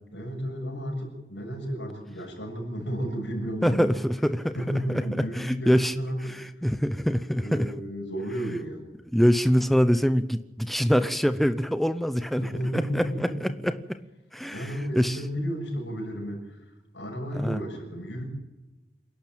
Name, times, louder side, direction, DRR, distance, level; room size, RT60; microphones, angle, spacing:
voice 1, 0.1-4.0 4.5-6.7 7.3-8.8 12.4-13.6 14.5-16.6 16.9-18.2, equal, 90° left, 2 dB, 7.0 m, -33 dB
voice 2, 3.6-4.5 4.9-5.9 6.2-7.7 9.1-13.8 14.3-15.2 17.3-17.6, equal, ahead, 11 dB, 0.7 m, -25 dB
27.0 x 12.0 x 8.9 m, 1.1 s
head